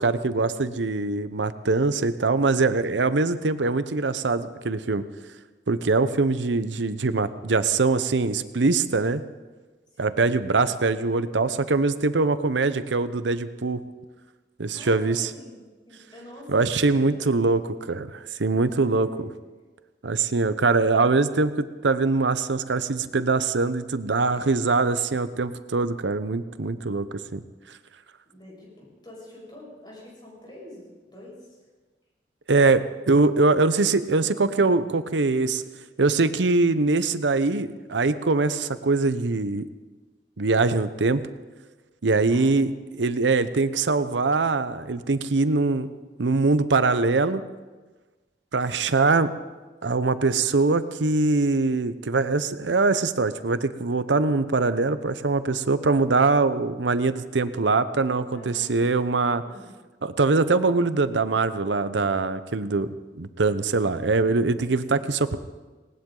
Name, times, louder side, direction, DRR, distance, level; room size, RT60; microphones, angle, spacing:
voice 1, 0.0-5.0 5.7-9.2 10.0-13.8 14.6-15.3 16.5-17.6 17.9-19.1 20.0-27.4 32.5-35.6 36.0-39.6 40.4-41.2 42.0-42.7 43.0-45.9 46.2-47.4 48.5-49.3 49.8-59.4 60.0-65.4, right 3 dB, 85° right, 12 dB, 0.8 m, -23 dB
voice 2, 9.9-10.2 14.7-15.6 15.9-17.5 18.7-19.2 24.3-24.6 28.3-31.7 42.3-42.6 58.3-58.9 59.4-59.7 64.6-65.0, left 1 dB, 25° left, -4 dB, 7.0 m, -46 dB
19.0 x 19.0 x 3.9 m, 1.3 s
head